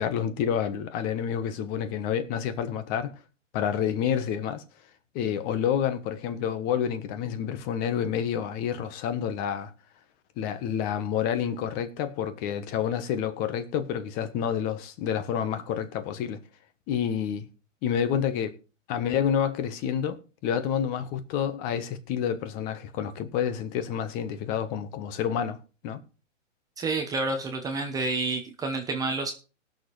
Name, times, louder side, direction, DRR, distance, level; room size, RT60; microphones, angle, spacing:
voice 1, 0.0-3.1 3.5-4.6 5.1-9.7 10.4-16.4 16.9-17.5 17.8-18.6 18.9-26.0, left 8 dB, 25° left, 1.1 m, -29 dB
voice 2, 26.8-29.3, right 3 dB, 10° right, 0.9 m, -29 dB
20.0 x 6.6 x 3.2 m
hypercardioid pair, 140°, 38 cm